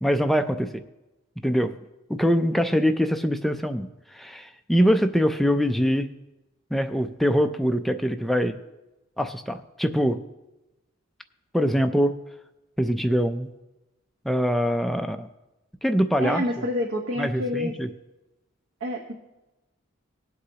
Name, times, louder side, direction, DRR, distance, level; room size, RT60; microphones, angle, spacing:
voice 1, 0.0-0.8 1.4-1.7 2.1-3.9 4.1-6.1 6.7-8.6 9.2-10.2 11.5-12.1 12.8-13.5 14.2-15.3 15.8-16.4 17.2-17.9, equal, ahead, 7 dB, 0.4 m, -23 dB
voice 2, 16.2-17.7 18.8-19.1, left 1 dB, 80° right, 0 dB, 1.2 m, -28 dB
19.5 x 8.0 x 2.8 m, 1.0 s
head